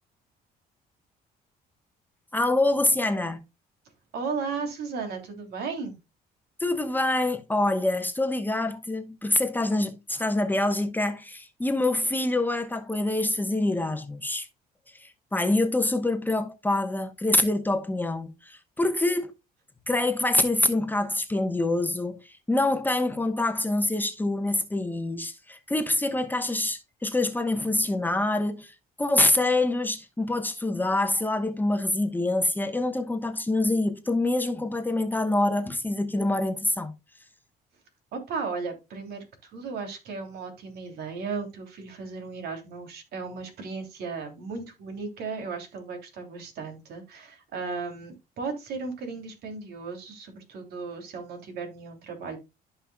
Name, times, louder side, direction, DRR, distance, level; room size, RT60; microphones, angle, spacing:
voice 1, 2.3-3.4 6.6-14.5 14.9-19.3 19.9-28.7 29.0-36.9, left 2 dB, 10° left, 1.0 m, -26 dB
voice 2, 4.1-6.0 38.1-52.4, right 4 dB, 70° right, 3.0 m, -35 dB
13.5 x 5.5 x 2.3 m
cardioid pair, 110°, 17 cm